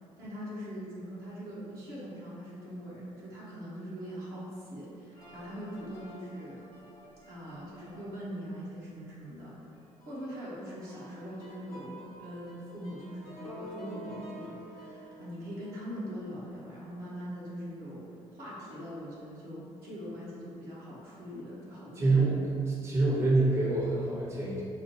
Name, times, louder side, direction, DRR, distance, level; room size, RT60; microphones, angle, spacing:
voice 1, 0.2-6.6 7.3-9.5 10.1-22.3, equal, 60° right, -8 dB, 1.3 m, -42 dB
sound 1, 5.2-8.8 9.3-9.4 9.7-17.7 17.9-18.2 18.7-19.1 19.6-20.3, right 1 dB, 85° left, 0.7 m, -50 dB
voice 2, 22.0-22.4 22.7-24.6, right 3 dB, 15° right, -5 dB, 0.8 m, -26 dB
4.8 x 2.2 x 3.0 m, 2.6 s
figure-of-eight pair, 50°, 18 cm